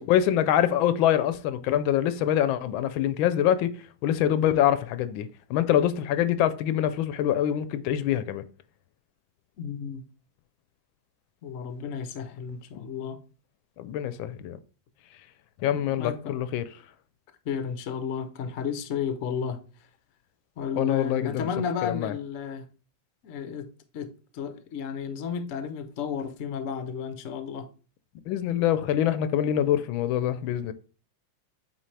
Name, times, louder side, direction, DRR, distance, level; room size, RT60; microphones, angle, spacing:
voice 1, 0.0-3.7 4.0-8.4 13.8-14.6 15.6-16.7 20.7-21.5 21.8-22.1 28.3-30.7, left 11 dB, 85° left, 1.4 m, -25 dB
voice 2, 9.6-10.1 11.4-13.2 15.7-16.4 17.5-19.6 20.6-22.7 23.2-23.7 23.9-27.7, left 7 dB, 60° left, 0.8 m, -33 dB
8.2 x 3.9 x 3.3 m
omnidirectional pair, 2.1 m